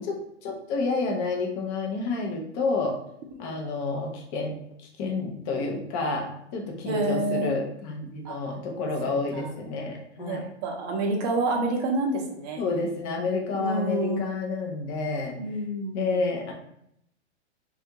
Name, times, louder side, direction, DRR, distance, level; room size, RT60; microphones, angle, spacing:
voice 1, 0.1-3.0 3.4-4.6 5.0-10.5 12.6-15.3 15.9-16.5, left 3 dB, 20° left, 1 dB, 0.4 m, -29 dB
voice 2, 6.8-7.6 8.2-8.6 9.1-9.5 10.2-12.6 13.5-14.2 15.4-16.2, right 2 dB, 35° right, 2 dB, 0.6 m, -28 dB
2.4 x 2.3 x 2.8 m, 0.74 s
hypercardioid pair, 120°, 35 cm